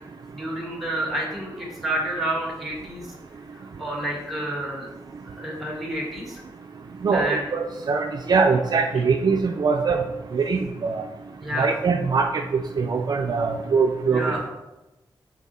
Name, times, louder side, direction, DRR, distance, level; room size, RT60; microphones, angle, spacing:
voice 1, 0.3-3.1 3.5-4.9 5.2-6.4 7.1-7.4 8.9-9.0 11.4-11.8 14.1-14.5, right 1 dB, ahead, -2 dB, 1.6 m, -29 dB
voice 2, 7.0-10.0 10.3-11.0 11.6-12.4 12.8-14.3, right 5 dB, 50° right, 3 dB, 0.4 m, -22 dB
6.0 x 4.0 x 4.1 m, 0.99 s
wide cardioid pair, 155°, 9 cm